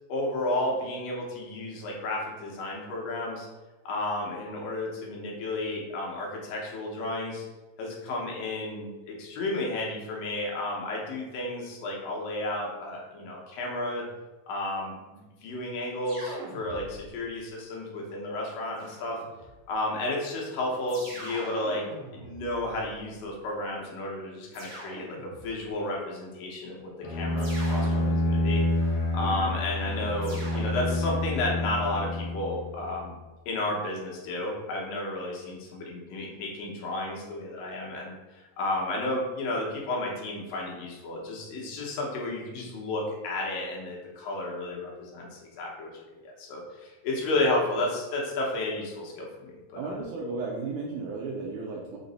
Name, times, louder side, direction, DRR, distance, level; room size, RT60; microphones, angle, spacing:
voice 1, 0.1-3.5 3.9-7.5 7.8-14.0 14.5-19.2 19.7-21.8 22.1-28.6 29.1-33.1 33.5-38.2 38.6-45.9 46.2-50.0, left 2 dB, 85° left, -2 dB, 2.6 m, -32 dB
sound 1, 16.0-17.2 18.8-19.6 20.9-23.2 24.5-25.6 27.4-28.7 30.2-31.4, right 1 dB, 60° right, 0.7 m, -43 dB
Bowed string instrument, 27.0-32.9, left 1 dB, 70° left, 1.4 m, -28 dB
voice 2, 29.2-29.5 49.8-52.0, right 3 dB, 85° right, -2 dB, 1.7 m, -34 dB
5.7 x 2.0 x 3.9 m, 1.2 s
omnidirectional pair, 3.8 m